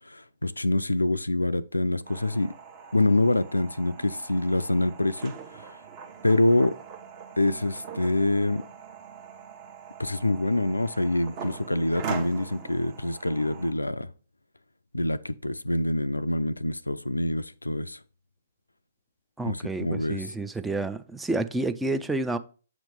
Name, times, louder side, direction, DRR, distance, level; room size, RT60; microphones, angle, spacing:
voice 1, 0.1-2.5 2.9-5.3 6.2-6.7 7.4-8.6 10.0-14.1 14.9-18.0 19.5-20.2, left 1 dB, 85° left, 0.3 m, -25 dB
sound 1, 2.0-13.7, right 6 dB, 35° right, 1.0 m, -42 dB
voice 2, 19.4-22.4, right 2 dB, 5° right, 0.3 m, -29 dB
7.5 x 3.0 x 5.2 m
figure-of-eight pair, 125°, 0 cm